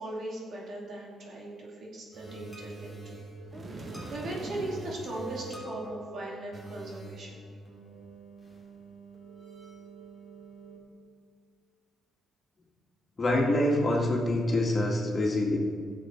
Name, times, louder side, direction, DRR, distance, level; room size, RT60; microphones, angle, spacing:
voice 1, 0.0-3.2 3.7-3.8 4.1-7.4, right 1 dB, 60° right, -2 dB, 2.6 m, -39 dB
sound 1, 2.1-10.8, right 3 dB, 10° right, 3.4 m, -45 dB
sound 2, 3.5-5.0, right 2 dB, 30° right, 1.3 m, -42 dB
voice 2, 13.2-15.6, left 1 dB, 35° left, -1 dB, 2.2 m, -25 dB
15.5 x 7.0 x 4.6 m, 2.1 s
cardioid pair, 90°, 0 cm